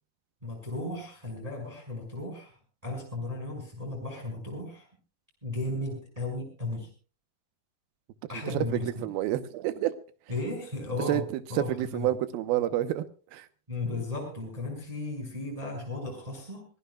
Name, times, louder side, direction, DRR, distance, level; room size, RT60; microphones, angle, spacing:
voice 1, 0.4-2.5 2.8-4.9 5.4-6.9 8.3-9.0 10.3-12.1 13.7-16.7, left 2 dB, 10° right, 4.9 m, -35 dB
voice 2, 8.7-10.0 11.1-11.2 11.6-13.1 13.3-13.5, right 13 dB, 80° right, 2.8 m, -28 dB
26.0 x 17.0 x 2.3 m
omnidirectional pair, 4.4 m